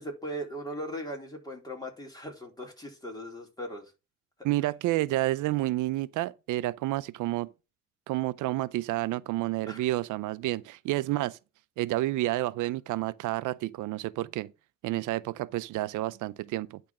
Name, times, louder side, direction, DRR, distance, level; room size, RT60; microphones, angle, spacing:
voice 1, 0.0-3.9 9.7-9.8, equal, 15° left, 4.1 m, -38 dB
voice 2, 4.4-7.5 8.1-11.4 11.8-14.5 14.8-16.8, right 17 dB, 85° right, 0.5 m, -30 dB
10.5 x 4.0 x 6.0 m
cardioid pair, 90°, 30 cm